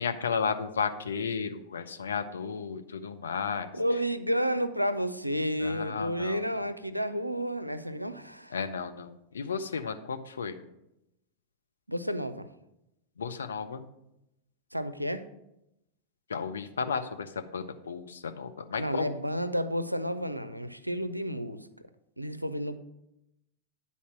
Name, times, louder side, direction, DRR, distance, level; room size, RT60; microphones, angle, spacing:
voice 1, 0.0-3.7 5.6-6.6 8.5-10.6 13.2-13.8 16.3-19.1, left 6 dB, 70° left, 8 dB, 0.6 m, -33 dB
voice 2, 3.7-8.6 11.9-12.5 14.7-15.3 18.8-21.7 22.2-22.8, equal, 90° right, 12 dB, 0.4 m, -31 dB
10.0 x 4.1 x 5.9 m, 0.87 s
figure-of-eight pair, 90°, 0 cm